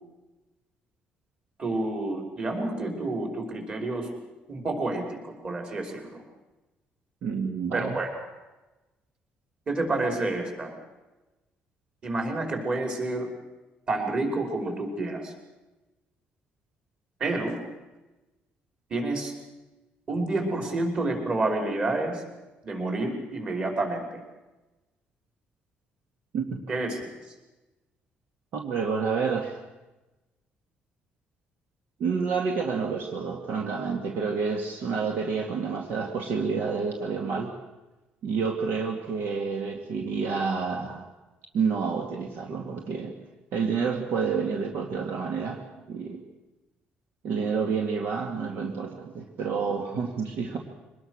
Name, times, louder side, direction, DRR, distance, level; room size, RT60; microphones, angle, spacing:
voice 1, 1.6-4.1 4.5-6.2 7.7-8.1 9.7-10.7 12.0-13.3 13.9-15.3 17.2-17.6 18.9-19.3 20.1-22.2 22.6-24.2 26.7-27.0, right 2 dB, 30° right, 3 dB, 5.4 m, -29 dB
voice 2, 7.2-8.0 26.3-26.6 28.5-29.6 32.0-37.5 38.2-41.1 41.5-43.1 43.5-45.6 45.9-46.2 47.2-50.6, right 5 dB, 65° right, 2 dB, 2.4 m, -29 dB
24.0 x 20.0 x 6.5 m, 1.1 s
cardioid pair, 140°, 4 cm